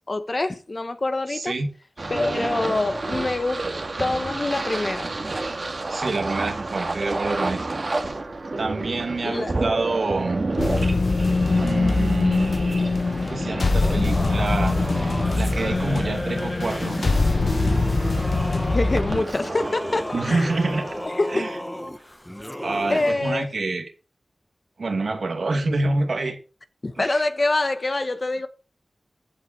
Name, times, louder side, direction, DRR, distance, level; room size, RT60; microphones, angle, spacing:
voice 1, 0.0-1.5 2.1-3.6 4.0-5.1 9.2-9.5 18.7-20.4 21.2-21.5 22.9-23.5 26.8-28.5, left 2 dB, 50° left, 1.3 m, -25 dB
voice 2, 1.3-1.7 5.9-7.8 8.6-10.4 11.6-12.5 13.3-17.0 20.1-20.9 21.3-21.5 22.6-23.9 24.8-26.4 26.9-27.2, right 3 dB, 80° right, 2.5 m, -27 dB
sound 1, 2.0-21.1, right 2 dB, 60° right, 2.0 m, -31 dB
sound 2, 10.6-19.2, left 3 dB, 75° left, 1.4 m, -22 dB
Singing / Musical instrument, 13.8-23.1, equal, 10° left, 1.0 m, -34 dB
15.5 x 6.0 x 4.4 m
cardioid pair, 50°, 0 cm